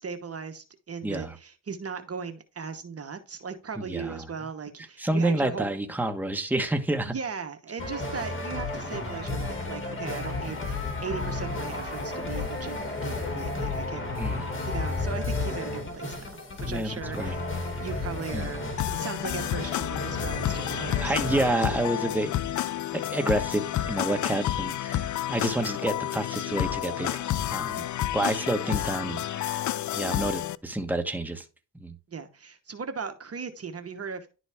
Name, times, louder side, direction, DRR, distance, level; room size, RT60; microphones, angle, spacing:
voice 1, 0.0-5.7 7.0-14.2 14.6-17.4 17.8-18.6 18.9-21.3 32.1-34.3, right 5 dB, 40° right, 1.1 m, -38 dB
voice 2, 1.0-1.3 3.8-4.2 5.0-7.2 10.5-10.6 14.1-14.4 16.6-17.4 18.3-18.5 21.0-22.3 22.6-22.7 22.9-27.2 27.5-27.8 28.1-29.6 29.9-31.4 31.7-31.9, right 1 dB, 5° right, 1.3 m, -29 dB
sound 1, 7.8-21.5, left 3 dB, 30° left, 2.3 m, -32 dB
sound 2, 18.8-30.6, left 12 dB, 50° left, 0.5 m, -30 dB
11.0 x 4.0 x 3.5 m
cardioid pair, 80°, 38 cm